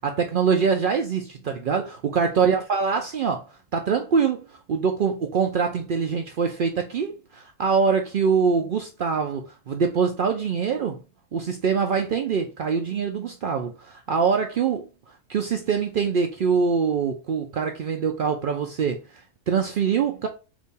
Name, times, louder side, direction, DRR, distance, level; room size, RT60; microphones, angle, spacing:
voice 1, 0.0-3.4 3.7-11.0 11.3-20.3, right 6 dB, 85° right, 0.4 m, -24 dB
4.0 x 2.6 x 3.5 m
omnidirectional pair, 1.5 m